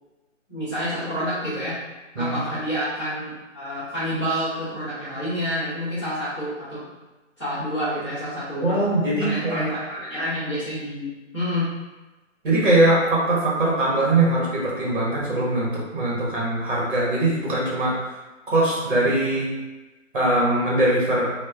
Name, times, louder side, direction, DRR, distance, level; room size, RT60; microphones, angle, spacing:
voice 1, 0.5-1.7 2.2-6.9 7.4-8.8 9.2-11.1 11.3-11.7, equal, 20° left, -18 dB, 0.7 m, -28 dB
voice 2, 8.6-9.6 12.4-18.2 18.5-19.5 20.1-21.3, right 1 dB, 40° right, -5 dB, 0.9 m, -21 dB
2.8 x 2.1 x 2.3 m, 1.1 s
hypercardioid pair, 165°, 39 cm